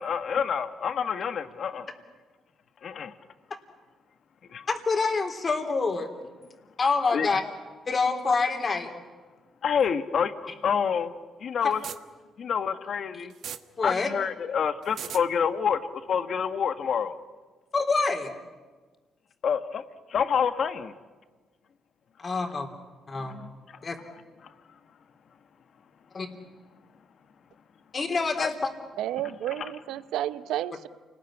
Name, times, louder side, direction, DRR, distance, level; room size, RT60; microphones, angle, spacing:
voice 1, 0.0-1.9 2.8-3.1 4.5-4.7 7.1-7.4 9.6-10.3 10.6-11.1 11.4-11.8 12.4-13.3 13.8-15.8 16.1-17.1 19.4-19.8 20.1-20.9 23.2-23.5 28.4-28.5, left 7 dB, 60° left, 10 dB, 1.6 m, -27 dB
voice 2, 4.7-6.1 6.8-7.4 7.9-8.9 13.8-14.1 17.7-18.3 22.2-22.7 23.1-23.4 23.8-24.0 26.1-26.3 27.9-28.5, left 4 dB, 35° left, 5 dB, 3.6 m, -26 dB
sound 1, 11.7-12.0 13.3-13.6 14.8-15.2, right 9 dB, 65° right, 1.2 m, -36 dB
voice 3, 29.0-30.9, right 12 dB, 85° right, 15 dB, 0.7 m, -31 dB
28.5 x 20.5 x 10.0 m, 1.4 s
cardioid pair, 90°, 0 cm